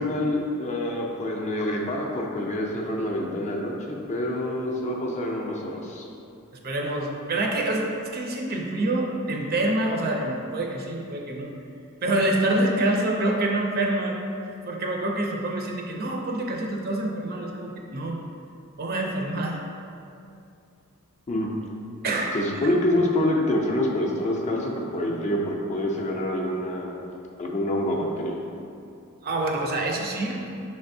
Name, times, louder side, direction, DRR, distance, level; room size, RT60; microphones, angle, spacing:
voice 1, 0.0-6.1 21.3-21.5 22.3-26.9 27.4-28.4, left 1 dB, 35° left, -1 dB, 0.5 m, -26 dB
voice 2, 6.6-11.5 12.0-14.2 14.7-18.2 18.8-19.6 22.0-22.7 29.2-30.4, right 1 dB, 45° right, 0 dB, 0.5 m, -26 dB
5.9 x 3.3 x 2.6 m, 2.6 s
head